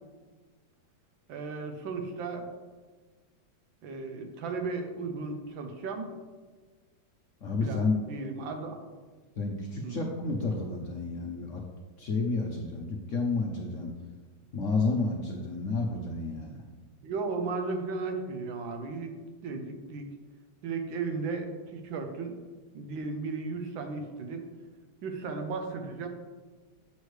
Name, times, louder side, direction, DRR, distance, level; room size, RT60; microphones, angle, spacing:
voice 1, 1.3-2.5 3.8-6.1 7.6-8.8 9.8-10.0 17.0-19.1 19.4-20.1 20.6-22.4 22.7-24.4 25.0-26.1, right 4 dB, 85° right, 5 dB, 1.6 m, -35 dB
voice 2, 7.4-7.9 9.4-11.6 12.0-13.9 14.5-16.6, left 3 dB, 60° left, 0 dB, 0.8 m, -30 dB
8.2 x 6.3 x 3.2 m, 1.4 s
omnidirectional pair, 2.1 m